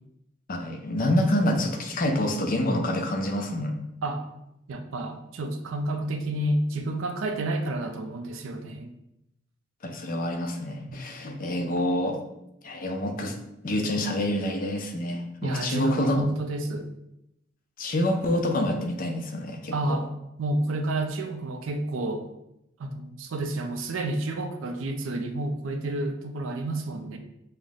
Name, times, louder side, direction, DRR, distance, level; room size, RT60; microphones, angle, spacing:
voice 1, 0.5-3.8 9.8-12.2 12.6-13.4 13.6-16.2 17.8-20.0, left 1 dB, 45° left, 3 dB, 0.5 m, -27 dB
voice 2, 4.7-8.9 10.8-11.0 15.4-16.9 19.7-20.1 20.4-22.2 22.8-27.2, right 1 dB, 80° right, 7 dB, 0.5 m, -30 dB
5.5 x 2.1 x 3.5 m, 0.84 s
head